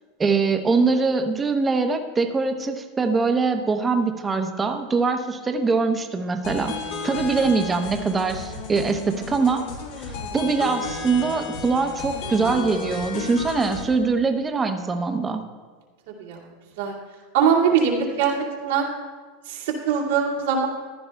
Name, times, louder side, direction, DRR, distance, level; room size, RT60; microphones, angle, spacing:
voice 1, 0.2-6.7 7.0-9.6 10.0-15.4, right 4 dB, 20° right, 6 dB, 0.9 m, -23 dB
sound 1, 6.4-13.8, left 4 dB, 70° left, 1.6 m, -33 dB
voice 2, 17.3-18.3 18.6-18.9 19.5-20.7, right 7 dB, 80° right, -2 dB, 2.2 m, -21 dB
15.0 x 10.5 x 2.3 m, 1.4 s
supercardioid pair, 115°, 0 cm